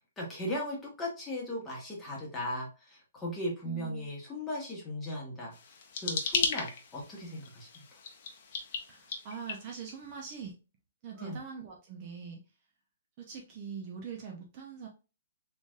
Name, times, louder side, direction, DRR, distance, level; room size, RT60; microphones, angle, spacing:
voice 1, 0.2-8.0 11.2-11.4, left 1 dB, 10° left, -4 dB, 1.2 m, -38 dB
voice 2, 3.6-4.1 8.9-10.5 11.0-12.4 13.2-14.9, right 6 dB, 30° right, 1 dB, 0.7 m, -43 dB
sound 1, 5.5-10.2, left 5 dB, 45° left, 0.8 m, -36 dB
4.0 x 3.2 x 2.4 m, 0.32 s
hypercardioid pair, 165°, 0 cm